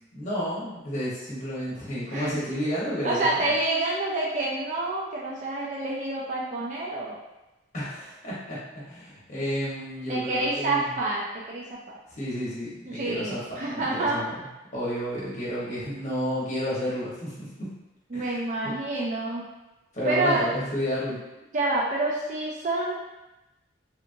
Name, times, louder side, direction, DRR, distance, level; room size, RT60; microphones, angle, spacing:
voice 1, 0.1-3.3 7.7-10.9 12.1-14.3 14.7-17.7 18.1-18.7 19.9-21.2, equal, 35° left, -8 dB, 0.9 m, -31 dB
voice 2, 3.0-7.2 10.1-12.0 12.9-14.3 18.1-19.5 20.0-20.5 21.5-22.9, right 2 dB, 40° right, -4 dB, 0.3 m, -28 dB
2.8 x 2.4 x 2.5 m, 0.98 s
head